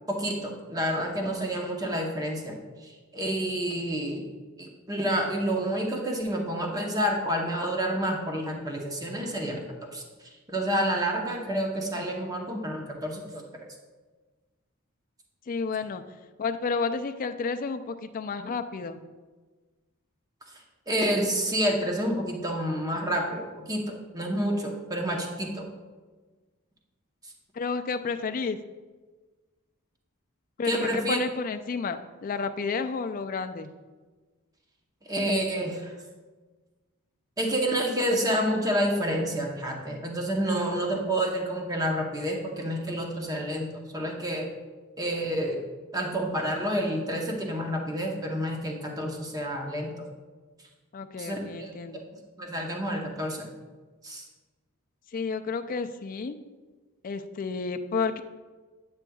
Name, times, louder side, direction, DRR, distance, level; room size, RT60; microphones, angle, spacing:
voice 1, 0.1-2.6 2.8-4.2 4.6-10.0 10.5-13.4 20.9-25.7 30.6-31.2 35.1-35.9 37.4-44.5 45.0-45.6 45.9-49.9 51.2-51.7 52.4-53.5 54.0-54.2, equal, 15° right, 0 dB, 0.8 m, -29 dB
voice 2, 15.5-16.0 16.4-19.0 27.5-28.6 30.6-33.7 50.9-52.0 55.1-56.4 57.0-58.2, left 4 dB, 40° left, 8 dB, 0.3 m, -31 dB
9.0 x 7.0 x 2.3 m, 1.3 s
head